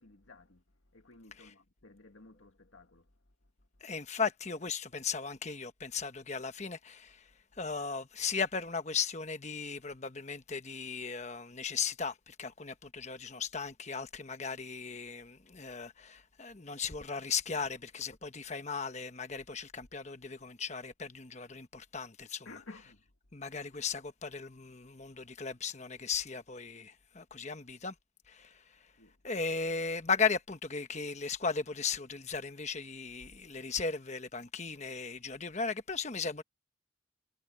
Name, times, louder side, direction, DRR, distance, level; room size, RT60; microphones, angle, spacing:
voice 1, 0.0-3.7 22.4-23.1 29.0-29.2, left 3 dB, 85° left, 1.9 m, -55 dB
voice 2, 3.8-7.3 7.6-22.5 23.3-27.9 28.3-28.6 29.2-36.4, left 5 dB, 35° left, 1.2 m, -36 dB
head